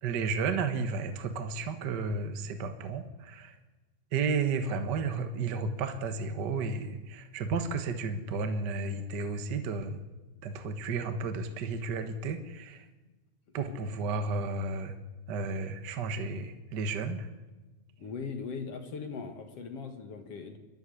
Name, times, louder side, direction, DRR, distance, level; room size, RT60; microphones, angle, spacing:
voice 1, 0.0-3.5 4.1-10.0 10.4-12.8 13.5-14.9 15.3-17.3, right 4 dB, 55° right, 7 dB, 1.2 m, -32 dB
voice 2, 18.0-20.6, left 5 dB, 55° left, 6 dB, 2.5 m, -39 dB
26.5 x 11.5 x 9.9 m, 1.2 s
omnidirectional pair, 3.6 m